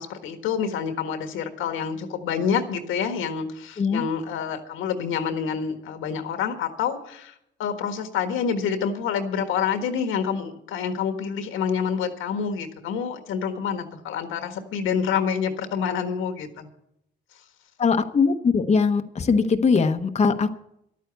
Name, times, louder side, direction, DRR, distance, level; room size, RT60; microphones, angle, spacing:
voice 1, 0.0-7.3 7.6-16.7, left 7 dB, 90° left, 7 dB, 1.6 m, -27 dB
voice 2, 17.8-20.5, left 5 dB, 35° left, 7 dB, 0.8 m, -21 dB
12.0 x 9.2 x 8.0 m, 0.77 s
cardioid pair, 90°, 20 cm